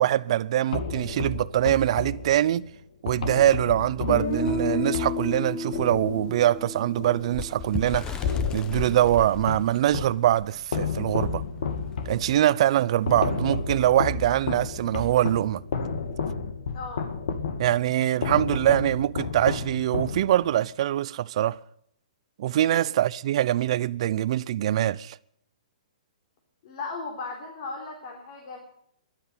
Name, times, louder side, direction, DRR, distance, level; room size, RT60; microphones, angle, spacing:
voice 1, 0.0-2.6 3.0-11.4 12.1-15.6 17.6-21.6 22.4-25.2, right 12 dB, 55° right, 0.6 m, -23 dB
sound 1, 0.7-7.8 8.2-10.2 10.7-20.6, left 4 dB, 70° left, 2.2 m, -32 dB
Guitar, 4.1-8.0, left 2 dB, 35° left, 3.4 m, -31 dB
Bird, 7.3-10.5 11.0-11.1 11.4-11.7 12.5-12.6, left 7 dB, 20° left, 0.9 m, -32 dB
voice 2, 16.7-17.1 22.8-23.0 26.6-28.6, left 4 dB, 50° left, 3.5 m, -37 dB
13.5 x 11.5 x 8.7 m
hypercardioid pair, 140°, 4 cm